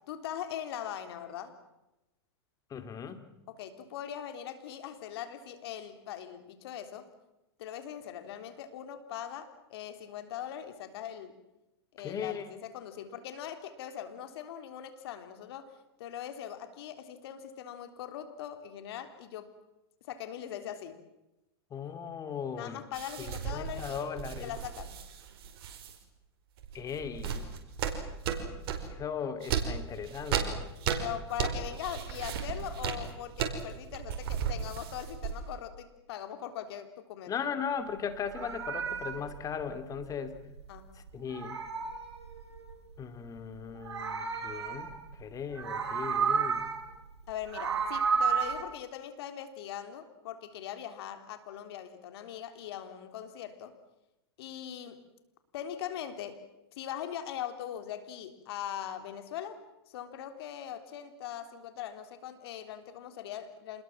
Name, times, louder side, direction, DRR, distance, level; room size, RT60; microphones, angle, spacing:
voice 1, 0.1-1.5 3.5-7.1 7.6-11.4 11.9-19.5 20.1-21.0 22.5-25.0 31.0-37.3 40.7-40.9 47.3-53.7 54.4-55.0 55.5-56.4 56.8-59.6 59.9-63.8, left 10 dB, 65° left, 9 dB, 3.7 m, -41 dB
voice 2, 2.7-3.2 12.0-12.5 21.7-22.8 23.2-24.5 26.7-27.5 28.9-30.6 37.3-40.4 41.1-41.6 43.0-46.7, left 7 dB, 25° left, 10 dB, 2.5 m, -38 dB
sound 1, 22.9-26.0 26.6-28.9 29.4-35.6, right 7 dB, 60° right, 4.9 m, -35 dB
Meow, 38.1-40.8 41.1-42.8 43.6-45.2 45.5-46.9 47.3-48.6, right 6 dB, 90° right, 4.6 m, -32 dB
27.5 x 21.0 x 7.5 m, 0.94 s
hypercardioid pair, 120°, 14 cm